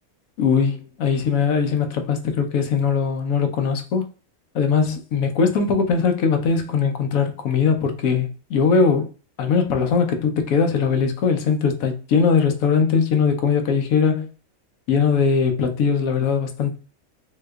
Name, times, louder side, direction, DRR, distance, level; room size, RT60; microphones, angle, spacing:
voice 1, 0.4-4.1 4.5-9.1 9.4-14.3 14.9-16.8, left 5 dB, 75° left, 1.1 m, -20 dB
3.7 x 2.9 x 2.3 m
omnidirectional pair, 1.5 m